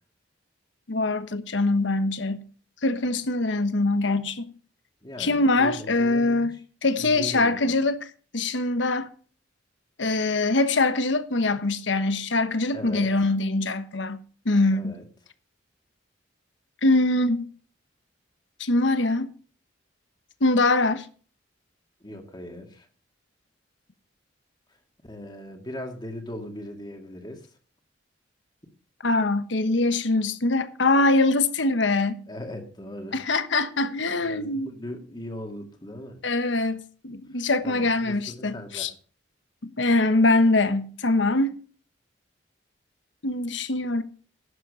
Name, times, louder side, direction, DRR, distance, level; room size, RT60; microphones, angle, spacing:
voice 1, 0.9-2.4 2.8-4.5 5.2-8.1 8.3-9.1 10.0-15.0 16.8-17.5 18.6-19.3 20.4-21.1 29.0-32.2 33.1-34.7 36.2-38.9 39.6-41.6 43.2-44.0, left 2 dB, 75° left, 1.2 m, -23 dB
voice 2, 5.0-6.6 7.0-7.8 12.7-13.1 14.7-15.0 22.0-22.9 25.0-27.5 32.3-33.2 34.2-36.2 37.6-38.9, left 1 dB, 25° left, 2.0 m, -39 dB
11.5 x 7.6 x 6.9 m
head